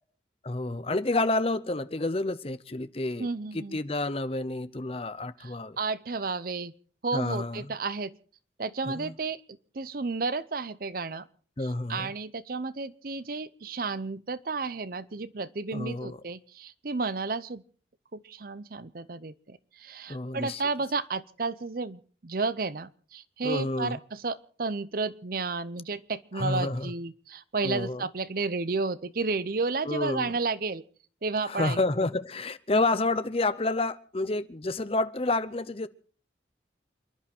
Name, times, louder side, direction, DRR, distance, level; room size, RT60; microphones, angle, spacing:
voice 1, 0.4-3.3 3.5-5.8 7.1-7.7 8.8-9.1 11.6-12.1 15.7-16.2 20.1-20.6 23.4-24.0 26.3-26.9 27.6-28.0 29.9-30.3 31.4-35.9, left 2 dB, 30° left, 0.7 m, -29 dB
voice 2, 3.2-3.8 5.4-6.7 7.0-8.1 8.6-9.4 9.7-11.2 11.9-17.6 18.1-30.8 31.2-31.8, right 4 dB, 50° right, 0.7 m, -32 dB
28.5 x 11.0 x 4.3 m
head